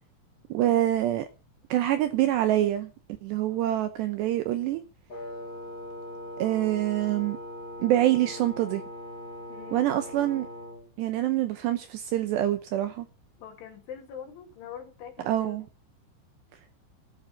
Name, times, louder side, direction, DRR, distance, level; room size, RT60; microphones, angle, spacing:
voice 1, 0.5-1.3 1.7-2.9 3.2-4.8 6.4-7.4 7.8-8.8 9.7-10.5 11.0-13.1 15.3-15.6, right 13 dB, 75° right, 2.7 m, -25 dB
Wind instrument woodwind instrument, 5.1-10.9, left 1 dB, 25° left, 3.2 m, -40 dB
voice 2, 9.5-9.8 13.4-15.6, left 8 dB, 70° left, 4.8 m, -43 dB
12.5 x 12.0 x 5.7 m
omnidirectional pair, 5.8 m